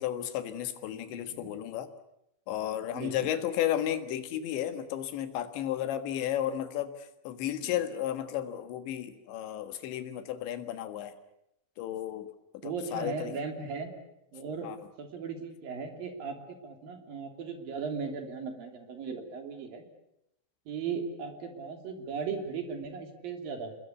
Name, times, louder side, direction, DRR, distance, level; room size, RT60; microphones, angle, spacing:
voice 1, 0.0-1.9 2.5-11.2 11.8-12.3 12.6-13.3 14.6-14.8, left 11 dB, 75° left, 9 dB, 3.8 m, -33 dB
voice 2, 0.9-1.6 2.9-3.3 7.6-7.7 12.6-13.9 14.3-14.7 15.0-19.8 20.7-23.8, right 5 dB, 55° right, 5 dB, 4.5 m, -37 dB
28.5 x 21.5 x 8.4 m, 0.82 s
omnidirectional pair, 5.2 m